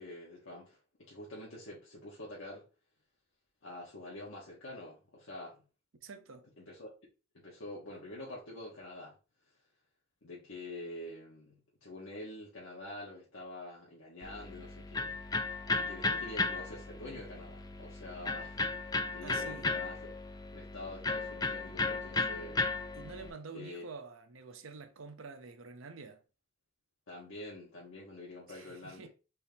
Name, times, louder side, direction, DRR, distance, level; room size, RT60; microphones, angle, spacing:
voice 1, 0.0-2.6 3.6-5.6 6.6-6.9 7.3-9.2 10.2-15.1 15.8-20.0 20.5-22.7 23.5-23.9 27.1-29.1, left 1 dB, 80° left, 1.2 m, -46 dB
voice 2, 6.0-6.5 19.2-19.7 22.9-26.2 28.5-29.1, right 4 dB, 80° right, 0.7 m, -48 dB
Electric guitar, 14.2-23.3, left 3 dB, 20° left, 0.3 m, -35 dB
4.3 x 3.5 x 2.7 m
head